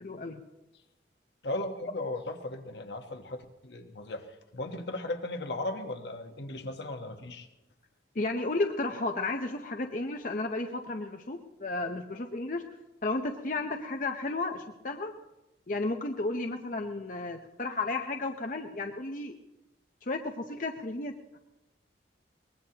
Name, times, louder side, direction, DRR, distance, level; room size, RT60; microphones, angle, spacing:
voice 1, 0.0-0.4 8.1-12.6 13.0-15.1 15.7-19.3 20.0-21.4, left 2 dB, 45° left, 3 dB, 0.7 m, -33 dB
voice 2, 1.4-4.3 4.5-7.5, left 2 dB, 70° left, 5 dB, 1.2 m, -36 dB
23.0 x 20.0 x 2.9 m, 1.0 s
head